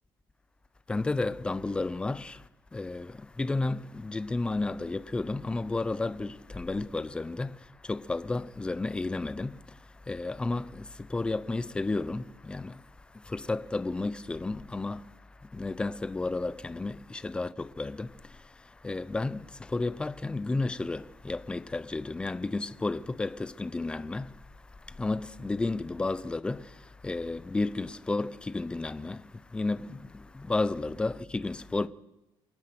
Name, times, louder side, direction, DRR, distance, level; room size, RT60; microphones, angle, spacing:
voice 1, 0.9-31.9, left 3 dB, 10° left, 0.7 m, -33 dB
28.0 x 18.0 x 6.0 m
cardioid pair, 170°, 9 cm